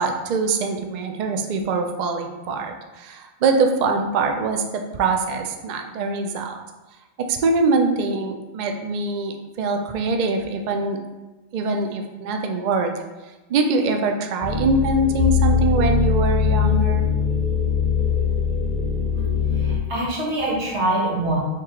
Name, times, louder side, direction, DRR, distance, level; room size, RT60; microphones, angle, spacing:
voice 1, 0.0-6.6 7.2-11.0 11.5-12.9 13.5-17.1, right 3 dB, 85° right, 4 dB, 0.4 m, -23 dB
sound 1, 14.4-19.8, left 7 dB, 50° left, 0.5 m, -21 dB
voice 2, 19.5-21.4, right 1 dB, 60° right, -5 dB, 1.5 m, -24 dB
4.5 x 3.6 x 2.9 m, 1.1 s
omnidirectional pair, 1.4 m